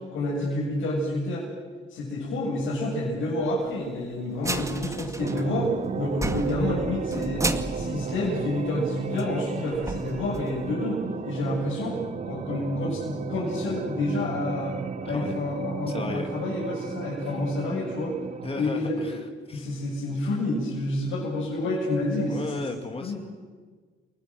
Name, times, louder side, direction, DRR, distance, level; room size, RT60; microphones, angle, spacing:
voice 1, 0.1-1.4 1.9-12.0 12.2-18.1 18.5-19.1 19.5-22.4 22.7-23.2, left 1 dB, 80° left, -5 dB, 7.6 m, -29 dB
sound 1, 4.3-5.8 6.1-8.9 9.2-9.3 9.7-10.7, right 2 dB, 15° right, 2.2 m, -33 dB
sound 2, 5.2-18.7, right 6 dB, 35° right, 0.8 m, -34 dB
voice 2, 15.0-15.4 15.9-16.3 17.2-17.3 18.4-19.7 22.3-23.2, left 3 dB, 30° left, 4 dB, 2.6 m, -35 dB
29.5 x 19.5 x 7.9 m, 1.5 s
cardioid pair, 90°, 20 cm